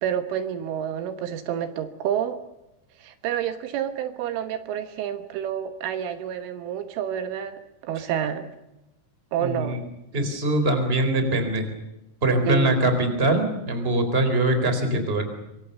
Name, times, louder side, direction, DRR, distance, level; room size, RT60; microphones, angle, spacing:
voice 1, 0.0-2.4 3.0-8.5 9.3-9.8 12.5-12.8, right 9 dB, 75° right, 9 dB, 3.7 m, -29 dB
voice 2, 9.4-9.8 10.1-11.7 12.2-15.2, right 2 dB, 10° right, 7 dB, 3.6 m, -22 dB
25.0 x 25.0 x 6.8 m, 0.94 s
omnidirectional pair, 5.8 m